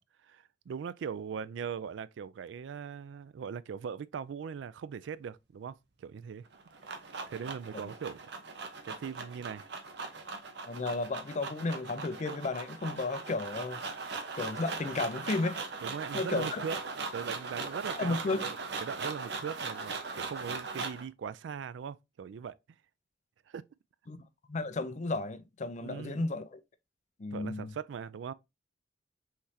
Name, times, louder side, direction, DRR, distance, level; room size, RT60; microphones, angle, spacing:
voice 1, 0.3-6.5 6.9-7.0 7.3-8.2 8.9-9.6 15.8-16.8 17.1-22.6 23.5-23.6 25.8-26.3 27.3-28.3, right 7 dB, 85° right, 0.3 m, -40 dB
Cereal Shake, 6.5-21.1, right 4 dB, 65° right, 0.8 m, -39 dB
voice 2, 10.6-13.8 14.4-15.6 16.1-16.7 18.0-18.5 24.1-24.2 24.5-26.6 27.2-27.7, left 3 dB, 40° left, 0.5 m, -33 dB
5.7 x 3.2 x 2.7 m
head